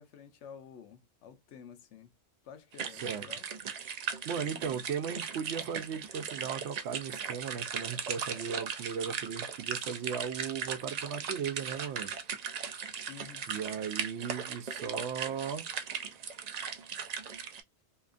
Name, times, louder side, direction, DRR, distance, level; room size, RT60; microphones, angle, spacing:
voice 1, 0.0-2.1 2.4-3.5 4.4-4.6 13.1-13.5, left 7 dB, 85° left, 0.9 m, -51 dB
sound 1, 2.7-17.6, right 7 dB, 60° right, 0.4 m, -38 dB
voice 2, 2.9-3.3 4.3-12.1 13.5-15.7, right 7 dB, 75° right, 0.9 m, -37 dB
2.8 x 2.3 x 2.4 m
omnidirectional pair, 1.2 m